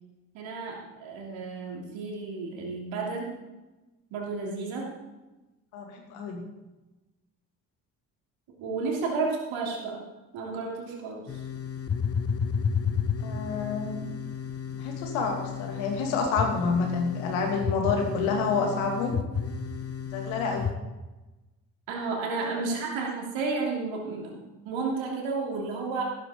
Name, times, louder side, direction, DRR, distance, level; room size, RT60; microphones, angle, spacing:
voice 1, 0.3-3.3 4.1-4.9 8.6-10.0 10.3-11.4 21.9-24.4 24.6-26.0, right 4 dB, 70° right, -2 dB, 3.4 m, -32 dB
voice 2, 5.7-6.4 13.2-14.1 14.8-19.2 20.1-20.7 22.4-22.5, left 4 dB, 75° left, 2 dB, 2.5 m, -28 dB
sound 1, 11.3-20.7, left 6 dB, 30° left, 1.0 m, -32 dB
14.0 x 13.0 x 3.8 m, 1.1 s
hypercardioid pair, 45°, 49 cm